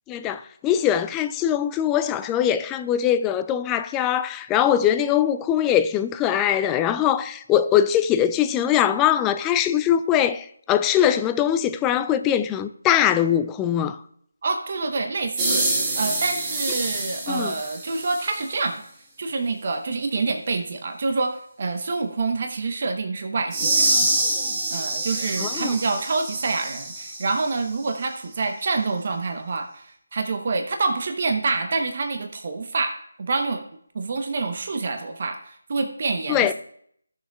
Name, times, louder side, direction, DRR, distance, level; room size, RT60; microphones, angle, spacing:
voice 1, 0.1-14.0 17.3-17.5 25.4-25.7 36.3-36.5, left 10 dB, 10° left, 0.4 m, -22 dB
voice 2, 14.4-18.8 19.2-24.1 24.7-33.6 33.9-36.5, right 3 dB, 45° right, 0.9 m, -27 dB
sound 1, 15.4-18.4 23.5-27.5, right 2 dB, 20° right, 1.5 m, -26 dB
16.5 x 6.6 x 2.4 m
figure-of-eight pair, 165°, 0 cm